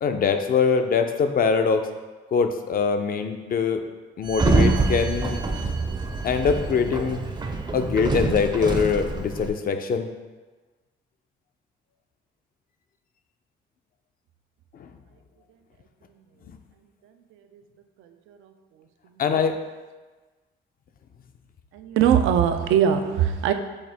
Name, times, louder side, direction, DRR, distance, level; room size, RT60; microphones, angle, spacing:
voice 1, 0.0-1.9 2.3-3.8 4.2-5.4 6.2-7.2 7.7-10.1 14.8-14.9 16.5-16.6 19.2-19.5, left 5 dB, 45° left, 7 dB, 0.4 m, -23 dB
Sliding door, 4.3-9.5, right 3 dB, 20° right, 0.5 m, -25 dB
voice 2, 17.3-17.6 18.0-18.5 19.1-19.2 21.7-23.5, right 9 dB, 85° right, 7 dB, 0.4 m, -22 dB
6.4 x 2.4 x 3.4 m, 1.3 s
cardioid pair, 90°, 20 cm